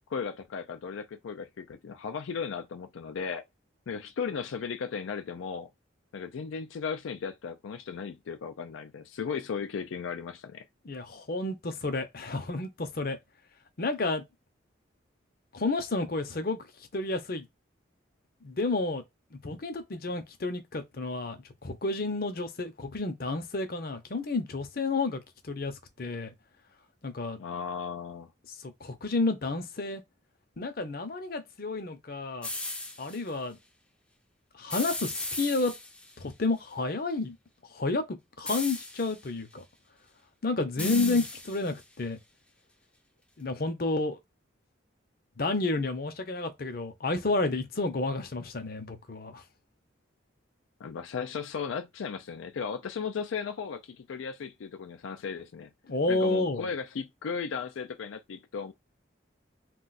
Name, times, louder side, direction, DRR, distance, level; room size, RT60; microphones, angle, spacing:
voice 1, 0.1-3.4 3.9-5.7 6.1-10.7 27.4-28.3 40.8-41.2 50.8-55.7 56.1-58.7, left 6 dB, 85° left, 0.4 m, -36 dB
voice 2, 10.8-13.2 13.8-14.2 15.5-16.6 16.9-17.4 18.4-19.0 19.3-25.7 26.0-26.3 27.0-27.4 28.6-30.0 30.6-32.5 33.0-33.6 34.6-35.7 36.2-37.3 37.7-39.6 40.4-42.2 43.4-44.2 45.4-49.4 55.9-56.7, left 3 dB, 50° left, 0.7 m, -31 dB
sound 1, 32.4-33.2 34.7-36.1 38.5-39.2 40.8-41.8, left 2 dB, 5° left, 0.5 m, -36 dB
2.4 x 2.3 x 4.0 m
head